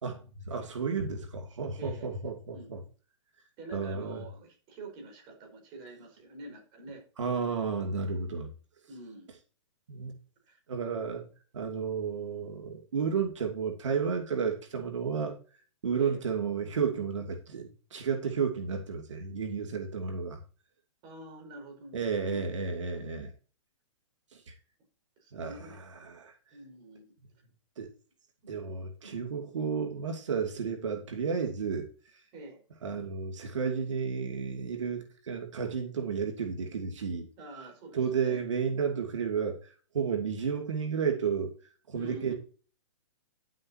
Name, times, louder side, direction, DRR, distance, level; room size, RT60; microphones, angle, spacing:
voice 1, 0.0-2.8 3.7-4.2 7.2-8.5 9.9-10.1 10.7-11.3 11.5-15.3 15.8-20.4 21.9-23.3 25.3-26.3 27.8-27.9 28.5-31.9 32.8-37.3 37.9-39.6 39.9-41.5 41.9-42.3, right 6 dB, 80° right, 2.6 m, -32 dB
voice 2, 1.8-2.1 2.5-2.8 3.6-7.0 8.9-9.3 10.5-10.6 16.0-16.2 21.0-22.4 22.9-23.0 25.2-25.8 26.5-27.1 29.0-29.1 32.3-32.6 37.4-38.4 41.9-42.3, right 2 dB, 30° right, 4.9 m, -46 dB
11.5 x 7.7 x 2.9 m
hypercardioid pair, 150°, 16 cm